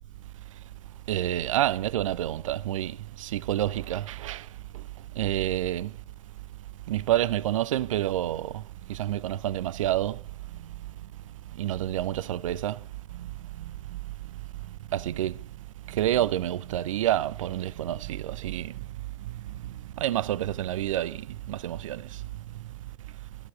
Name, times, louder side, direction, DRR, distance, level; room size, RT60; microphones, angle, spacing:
voice 1, 1.1-4.5 5.2-5.9 6.9-8.6 8.9-10.2 11.6-12.8 13.1-13.3 13.6-13.7 13.9-14.0 14.9-15.4 15.9-18.7 19.3-19.5 20.0-22.2, right 13 dB, 70° right, 0.7 m, -28 dB
19.5 x 14.0 x 5.0 m
figure-of-eight pair, 75°, 17 cm